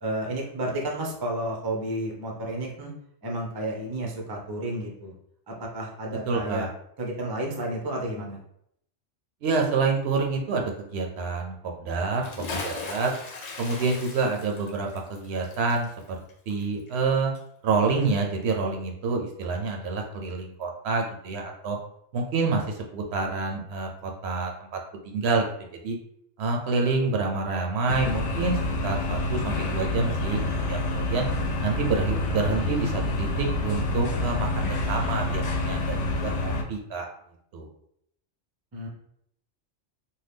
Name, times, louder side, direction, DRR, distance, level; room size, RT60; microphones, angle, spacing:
voice 1, 0.0-2.9 3.2-5.1 5.5-6.7 7.0-8.4 38.7-38.9, right 1 dB, 35° right, 0 dB, 0.4 m, -31 dB
voice 2, 6.3-6.7 9.4-11.5 11.8-13.1 13.6-15.9 16.5-17.3 17.6-21.8 22.1-24.8 25.1-25.4 25.8-26.0 26.4-31.3 31.6-37.1 37.5-37.7, right 4 dB, 70° right, 2 dB, 0.8 m, -27 dB
Bathtub (filling or washing) / Splash splatter, 12.1-17.1 17.3-17.4, left 3 dB, 55° left, 0.4 m, -38 dB
sound 1, 27.9-36.6, left 2 dB, 80° left, 0.9 m, -27 dB
2.7 x 2.2 x 3.4 m, 0.71 s
omnidirectional pair, 1.2 m